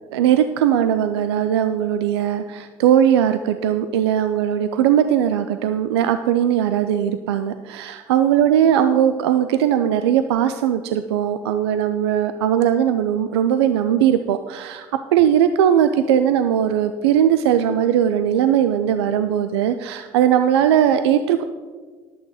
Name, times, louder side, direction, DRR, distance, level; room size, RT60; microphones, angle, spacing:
voice 1, 0.1-14.9 15.1-21.4, right 9 dB, 80° right, 10 dB, 0.4 m, -19 dB
11.0 x 7.8 x 4.8 m, 1.5 s
hypercardioid pair, 55°, 13 cm